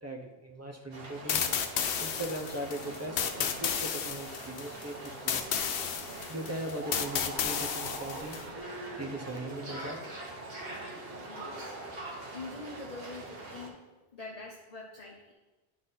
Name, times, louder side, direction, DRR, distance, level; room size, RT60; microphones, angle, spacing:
voice 1, 0.0-1.4 2.0-5.7 6.3-8.4 9.0-10.0, right 1 dB, 15° right, 1 dB, 0.8 m, -39 dB
sound 1, 0.9-13.7, right 2 dB, 65° right, 1.2 m, -45 dB
sound 2, 1.3-8.4, left 8 dB, 70° left, 0.8 m, -33 dB
sound 3, 5.8-5.9 6.2-12.3, right 1 dB, 45° right, 1.4 m, -44 dB
voice 2, 11.3-11.8 12.3-13.8 14.1-15.3, left 3 dB, 40° left, -1 dB, 0.8 m, -44 dB
11.0 x 4.1 x 4.0 m, 1.1 s
omnidirectional pair, 1.1 m